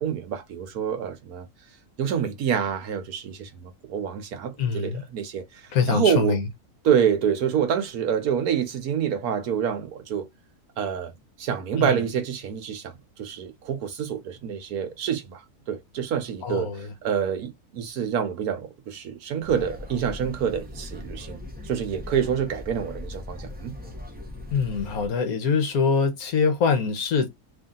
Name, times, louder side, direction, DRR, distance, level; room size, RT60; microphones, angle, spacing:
voice 1, 0.0-1.5 2.0-5.4 5.9-6.4 6.8-10.3 10.8-11.1 11.4-12.9 13.2-15.4 15.7-21.4 21.6-23.8, right 8 dB, 70° right, 1.3 m, -27 dB
voice 2, 4.6-5.0 5.7-6.5 11.8-12.0 16.4-16.9 24.5-27.3, left 5 dB, 70° left, 1.3 m, -24 dB
sound 1, 19.4-25.1, left 1 dB, 10° right, 0.5 m, -39 dB
3.2 x 2.7 x 3.7 m
omnidirectional pair, 1.6 m